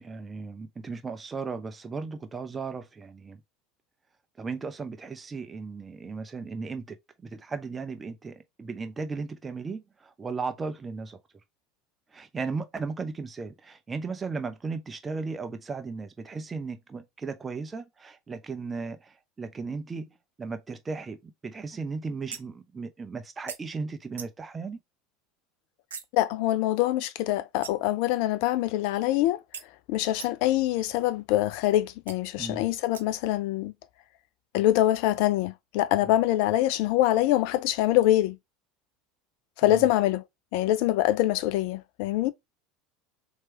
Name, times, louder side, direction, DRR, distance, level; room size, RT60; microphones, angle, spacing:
voice 1, 0.0-3.4 4.4-11.2 12.1-24.8 32.4-32.6 36.0-36.1 39.7-39.8, right 4 dB, 20° right, 0.7 m, -36 dB
sound 1, 22.3-22.7 23.5-23.6 24.2-24.5 25.9-26.1 27.6-28.0 29.5-29.6 30.2-30.5 32.1-32.2 32.9-33.3, right 6 dB, 80° right, 0.5 m, -42 dB
voice 2, 26.1-29.4 29.9-33.7 34.5-38.4 39.6-40.2 40.5-42.3, left 14 dB, 60° left, 0.4 m, -24 dB
3.2 x 3.0 x 3.1 m
figure-of-eight pair, 75°, 0 cm